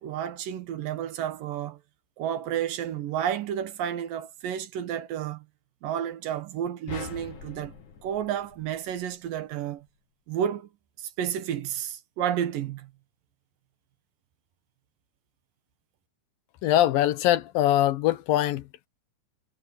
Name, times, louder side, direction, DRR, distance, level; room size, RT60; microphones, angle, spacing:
voice 1, 0.0-1.8 2.2-5.5 5.8-7.7 8.0-9.9 10.3-10.7 11.0-12.9, right 9 dB, 75° right, 3.0 m, -31 dB
sound 1, 6.9-9.3, left 5 dB, 65° left, 3.7 m, -42 dB
voice 2, 16.6-18.9, left 13 dB, 85° left, 2.8 m, -23 dB
omnidirectional pair, 4.0 m